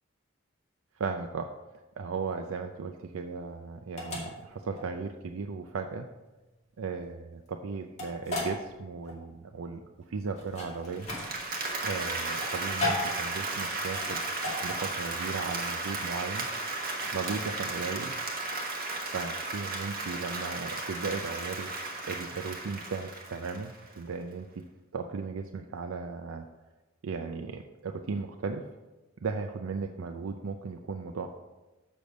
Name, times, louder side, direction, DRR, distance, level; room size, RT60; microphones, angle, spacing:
voice 1, 1.0-1.5 2.0-6.1 6.8-9.8 10.1-11.1 11.8-14.2 14.6-16.5 17.1-18.1 19.0-21.7 22.1-24.5 24.9-26.5 27.0-28.6 29.2-31.3, right 4 dB, 80° right, 5 dB, 0.5 m, -36 dB
sound 1, 2.3-17.7, left 2 dB, 35° left, 2.3 m, -38 dB
Applause, 10.9-23.9, right 2 dB, 45° right, 1.3 m, -35 dB
6.9 x 6.4 x 5.0 m, 1.1 s
head